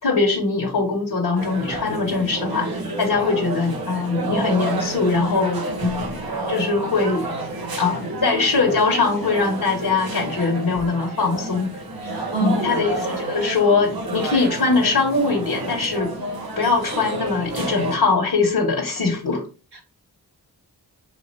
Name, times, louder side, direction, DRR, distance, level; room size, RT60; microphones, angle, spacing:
voice 1, 0.0-6.2 6.5-7.2 7.8-11.7 12.4-16.1 16.6-19.4, left 4 dB, 65° left, 2.2 m, -22 dB
sound 1, 1.4-18.0, right 2 dB, 60° right, 1.6 m, -30 dB
voice 2, 12.0-12.8 13.1-13.4 19.7-19.8, right 2 dB, 80° right, 2.7 m, -27 dB
7.1 x 3.0 x 4.5 m
wide cardioid pair, 65°, 40 cm